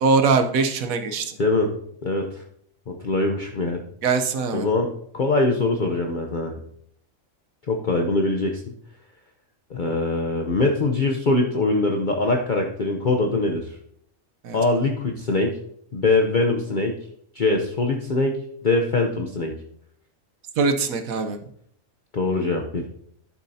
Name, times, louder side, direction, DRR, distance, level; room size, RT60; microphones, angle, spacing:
voice 1, 0.0-1.4 4.0-4.7 14.4-14.6 20.6-21.4, right 4 dB, 90° right, 7 dB, 1.3 m, -22 dB
voice 2, 1.4-1.7 2.0-2.4 2.9-3.8 4.5-6.5 7.7-8.6 9.7-13.6 14.5-15.6 15.9-16.9 17.3-18.4 18.6-19.5 22.1-22.9, left 2 dB, 40° left, 2 dB, 0.9 m, -22 dB
12.0 x 7.2 x 2.8 m, 0.67 s
omnidirectional pair, 1.4 m